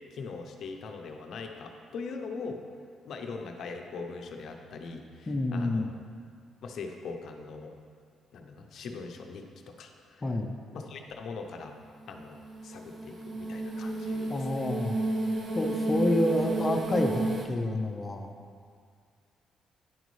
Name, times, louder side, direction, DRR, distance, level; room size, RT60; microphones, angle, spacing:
voice 1, 0.1-2.6 3.0-6.0 6.6-7.7 8.3-10.2 10.7-11.8 12.1-14.7, left 4 dB, 65° left, 4 dB, 0.6 m, -41 dB
voice 2, 5.3-5.9 10.2-10.5 14.3-15.0 15.5-18.3, left 1 dB, 25° left, 3 dB, 0.6 m, -28 dB
sound 1, 12.0-17.5, right 2 dB, 45° right, 0.7 m, -32 dB
10.0 x 5.1 x 3.2 m, 2.1 s
cardioid pair, 90°, 0 cm